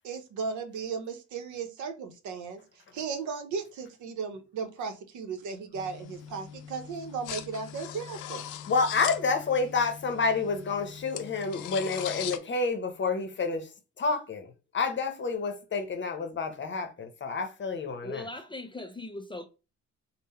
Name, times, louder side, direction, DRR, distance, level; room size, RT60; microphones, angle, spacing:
voice 1, 0.0-2.6 2.9-8.4, right 5 dB, 75° right, 0.8 m, -36 dB
sound 1, 5.7-12.4, left 10 dB, 85° left, 0.5 m, -40 dB
voice 2, 8.7-13.7 14.0-18.2, left 4 dB, 40° left, 0.7 m, -29 dB
voice 3, 18.0-19.5, left 2 dB, 15° left, 0.4 m, -39 dB
3.6 x 2.1 x 4.2 m
cardioid pair, 90°, 30 cm